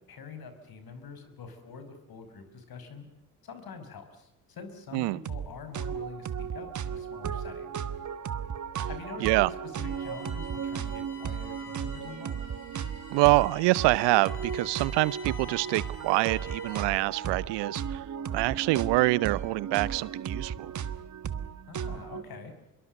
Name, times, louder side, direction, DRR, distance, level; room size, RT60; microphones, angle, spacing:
voice 1, 0.1-3.1 3.4-7.7 8.9-12.4 21.7-22.5, left 5 dB, 50° left, 9 dB, 5.6 m, -45 dB
sound 1, 5.2-5.5 5.7-22.2, right 8 dB, 40° right, 1.4 m, -35 dB
Bowed string instrument, 9.8-17.0, left 3 dB, 85° left, 7.2 m, -48 dB
voice 2, 13.1-18.0 18.3-20.7, right 20 dB, 65° right, 22 dB, 0.8 m, -25 dB
25.0 x 23.0 x 6.6 m, 0.85 s
hypercardioid pair, 55°, 46 cm